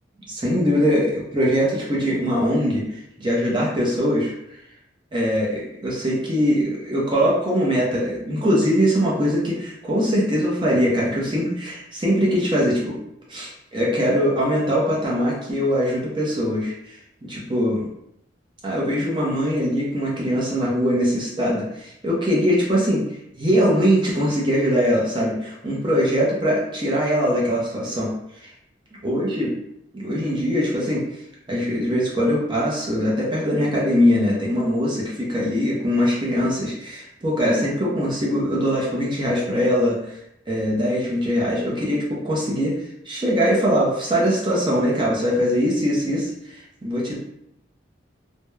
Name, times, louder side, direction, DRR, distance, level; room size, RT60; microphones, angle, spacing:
voice 1, 0.3-2.8 3.2-4.3 5.1-13.0 13.3-17.0 17.3-17.9 18.6-23.0 23.4-28.1 28.4-28.5 29.0-29.5 29.9-31.1 31.5-40.1 40.5-47.2, equal, 25° right, -5 dB, 0.5 m, -22 dB
3.0 x 2.0 x 2.2 m, 0.79 s
head